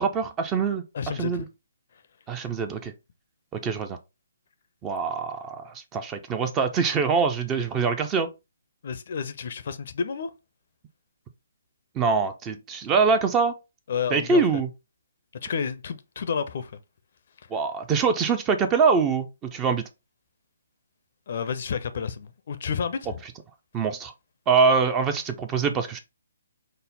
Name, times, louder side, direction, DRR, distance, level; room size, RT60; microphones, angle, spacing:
voice 1, 0.0-0.8 1.2-1.4 2.3-2.9 3.5-4.0 4.8-8.3 12.0-13.5 14.1-14.7 17.5-19.8 23.7-24.1 24.5-26.0, right 5 dB, 20° right, 0.5 m, -24 dB
voice 2, 0.9-1.5 8.8-10.3 13.9-14.4 15.4-16.7 21.3-23.2, left 6 dB, 50° left, 0.5 m, -30 dB
5.2 x 2.0 x 4.0 m
figure-of-eight pair, 135°, 0 cm